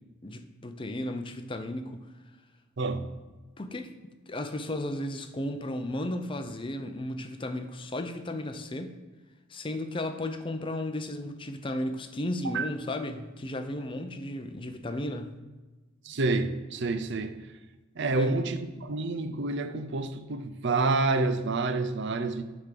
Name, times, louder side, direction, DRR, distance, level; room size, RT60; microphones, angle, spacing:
voice 1, 0.2-2.0 3.6-3.9 4.3-8.9 9.5-15.3 18.2-18.3, left 1 dB, 25° left, 0.6 m, -34 dB
voice 2, 2.8-3.2 12.4-12.7 16.0-17.4 18.0-22.4, right 3 dB, 55° right, 0.6 m, -28 dB
10.0 x 3.6 x 6.6 m
head